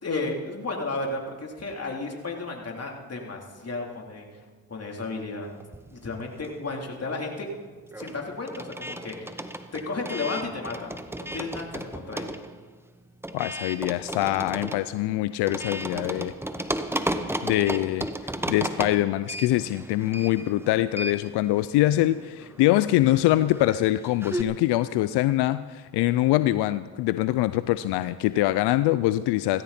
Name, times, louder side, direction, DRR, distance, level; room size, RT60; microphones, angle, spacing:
voice 1, 0.0-5.5 5.9-7.5 8.0-9.4 9.7-10.9 11.3-12.3, left 3 dB, 40° left, 0 dB, 3.5 m, -33 dB
sound 1, 5.6-6.9 7.1-24.4, right 1 dB, 5° right, 1.1 m, -35 dB
voice 2, 13.3-16.3 17.4-29.6, left 15 dB, 90° left, 14 dB, 0.5 m, -24 dB
17.5 x 16.0 x 4.3 m, 1.5 s
supercardioid pair, 55°, 39 cm